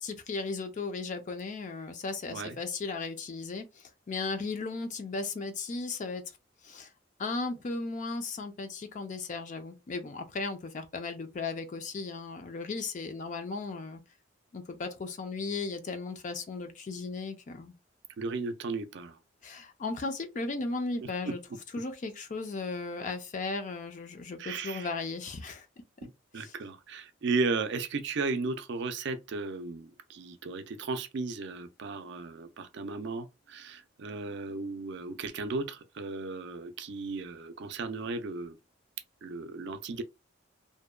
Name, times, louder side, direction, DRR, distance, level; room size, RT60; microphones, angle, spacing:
voice 1, 0.0-6.2 6.6-6.9 7.2-14.0 14.5-17.7 19.4-21.4 21.7-25.7 26.3-26.6, left 3 dB, 40° left, 0.4 m, -36 dB
voice 2, 18.2-19.2 21.0-21.3 24.4-24.9 26.0-38.6 39.2-40.0, right 3 dB, 60° right, 0.4 m, -35 dB
2.7 x 2.2 x 2.3 m
head